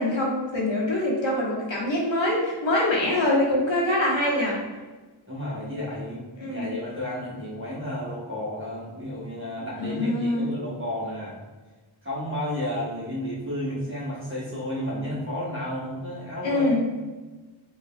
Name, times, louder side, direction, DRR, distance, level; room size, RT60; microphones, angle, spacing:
voice 1, 0.0-4.6 6.4-6.7 9.8-10.4 16.4-16.8, left 1 dB, 65° left, -4 dB, 1.3 m, -24 dB
voice 2, 5.3-11.4 12.0-16.9, left 1 dB, 25° right, -8 dB, 1.0 m, -32 dB
4.7 x 3.1 x 2.3 m, 1.3 s
wide cardioid pair, 45°, 48 cm